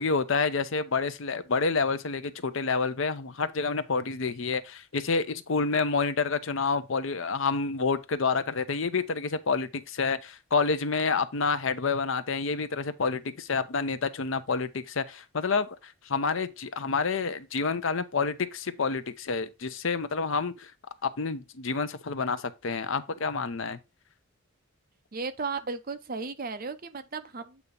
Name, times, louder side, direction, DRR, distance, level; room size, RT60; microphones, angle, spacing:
voice 1, 0.0-20.7 21.0-23.8, left 4 dB, 65° left, 0.6 m, -28 dB
voice 2, 25.1-27.6, right 4 dB, 40° right, 0.6 m, -35 dB
8.2 x 2.8 x 5.1 m
head